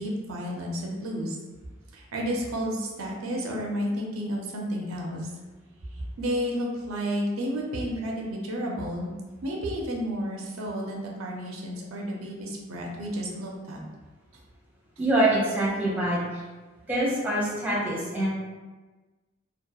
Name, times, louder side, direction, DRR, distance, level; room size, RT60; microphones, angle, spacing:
voice 1, 0.0-1.4 1.9-5.3 6.2-9.1 9.4-13.8, equal, 90° right, -1 dB, 0.5 m, -31 dB
voice 2, 15.0-16.2 16.9-18.3, right 1 dB, 10° right, -7 dB, 0.7 m, -25 dB
2.8 x 2.1 x 2.3 m, 1.2 s
head